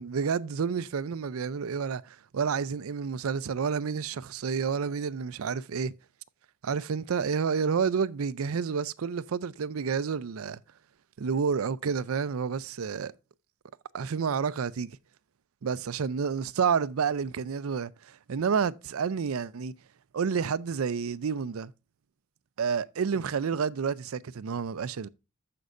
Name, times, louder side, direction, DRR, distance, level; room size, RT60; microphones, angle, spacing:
voice 1, 0.0-5.9 6.6-10.6 11.2-13.1 13.9-15.0 15.6-19.7 20.1-21.7 22.6-25.1, right 6 dB, 85° right, 0.5 m, -29 dB
14.5 x 5.3 x 2.5 m
head